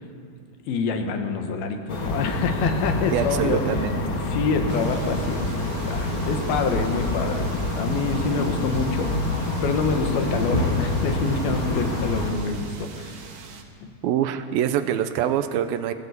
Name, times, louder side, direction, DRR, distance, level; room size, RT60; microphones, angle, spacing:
voice 1, 0.7-3.6 4.2-9.1 9.6-13.1 13.8-13.9, left 5 dB, 75° left, 5 dB, 3.3 m, -26 dB
sound 1, 1.9-12.3, left 1 dB, 40° left, 2.2 m, -27 dB
voice 2, 3.1-4.0 14.0-15.9, right 10 dB, 80° right, 10 dB, 2.5 m, -24 dB
sound 2, 4.7-13.6, right 5 dB, 55° right, 2.4 m, -44 dB
20.5 x 16.5 x 8.3 m, 2.4 s
omnidirectional pair, 4.4 m